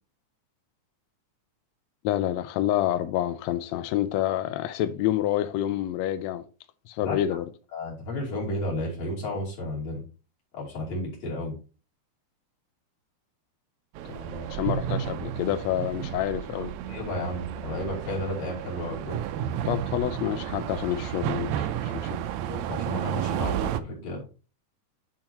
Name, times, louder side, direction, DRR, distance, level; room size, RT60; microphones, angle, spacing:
voice 1, 2.0-6.4 6.9-7.4 14.0-16.7 19.6-22.2, left 12 dB, 85° left, 1.5 m, -28 dB
voice 2, 7.0-7.4 7.7-10.0 10.5-11.5 16.9-19.2 22.5-24.2, left 1 dB, 55° left, 4.1 m, -32 dB
sound 1, 14.0-23.8, right 10 dB, 80° right, 1.7 m, -32 dB
10.5 x 4.7 x 2.9 m
omnidirectional pair, 3.6 m